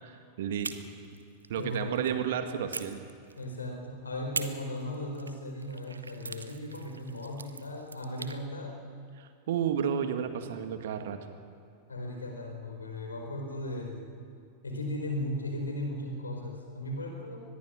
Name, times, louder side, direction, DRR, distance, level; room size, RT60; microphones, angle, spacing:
voice 1, 0.0-0.8 1.5-3.0 9.2-11.2, right 8 dB, 55° right, 7 dB, 1.9 m, -32 dB
sound 1, 0.6-2.2 2.7-3.7 4.3-8.4, right 4 dB, 75° right, 1.1 m, -42 dB
voice 2, 1.5-2.0 3.4-8.8 11.9-14.1 14.6-17.4, left 1 dB, 75° left, 2 dB, 4.5 m, -37 dB
24.0 x 20.5 x 6.3 m, 2.5 s
figure-of-eight pair, 90°, 0 cm